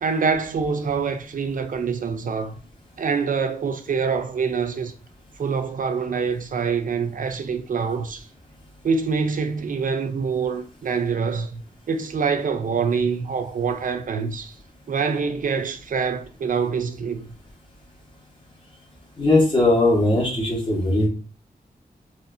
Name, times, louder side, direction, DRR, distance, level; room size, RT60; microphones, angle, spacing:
voice 1, 0.0-2.5 3.0-4.9 5.4-8.3 8.8-11.6 11.9-14.5 14.9-17.3, right 5 dB, 55° right, 0.4 m, -25 dB
voice 2, 19.2-21.1, left 2 dB, 30° left, 1.3 m, -19 dB
4.2 x 2.4 x 2.6 m
wide cardioid pair, 105°, 16 cm